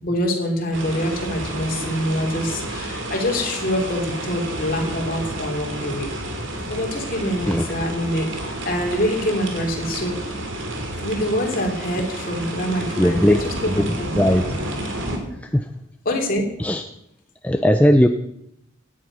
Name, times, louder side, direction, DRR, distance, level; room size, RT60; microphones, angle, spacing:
voice 1, 0.0-6.1 6.7-10.2 11.0-14.3 16.0-16.5, equal, 45° left, 1 dB, 3.4 m, -25 dB
sound 1, 0.7-15.2, right 1 dB, 65° right, 2.9 m, -30 dB
voice 2, 13.0-13.4 13.7-14.4 15.5-15.7 16.6-16.8 17.4-18.1, equal, 5° left, 6 dB, 0.5 m, -18 dB
17.0 x 10.5 x 6.2 m, 0.78 s
head